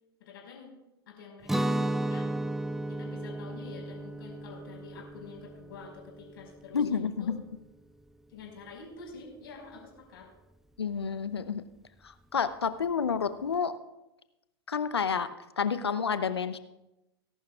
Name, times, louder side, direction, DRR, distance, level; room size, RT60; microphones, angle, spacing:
voice 1, 0.2-0.7 1.1-2.3 2.9-7.3 8.3-10.3, left 4 dB, 65° left, 0 dB, 4.8 m, -48 dB
Guitar, 1.5-7.3, right 1 dB, ahead, 0.3 m, -34 dB
voice 2, 6.7-7.4 10.8-11.6 12.0-13.7 14.7-15.3 15.6-16.6, left 6 dB, 85° left, 13 dB, 0.7 m, -29 dB
20.0 x 11.5 x 2.4 m, 0.95 s
hypercardioid pair, 100°, 13 cm